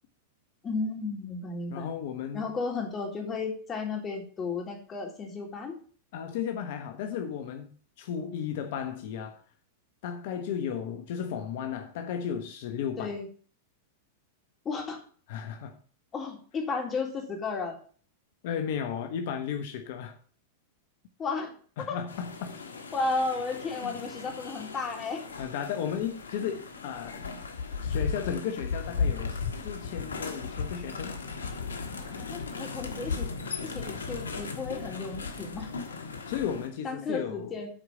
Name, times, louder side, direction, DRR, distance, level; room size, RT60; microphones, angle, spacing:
voice 1, 0.6-1.9 2.3-5.7 13.0-13.3 14.6-15.0 16.1-17.8 21.2-21.5 21.9-22.0 22.9-25.2 32.0-33.3 33.6-35.7 36.8-37.7, left 4 dB, 25° left, 3.3 m, -33 dB
voice 2, 1.7-2.5 6.1-7.7 8.0-9.4 10.0-13.1 15.3-15.7 18.4-20.2 21.8-22.6 23.8-23.9 25.4-27.4 27.8-31.1 36.3-37.6, left 8 dB, 60° left, 1.2 m, -34 dB
sound 1, 22.1-36.7, left 5 dB, 90° left, 1.4 m, -36 dB
8.8 x 5.0 x 7.1 m
hypercardioid pair, 105°, 0 cm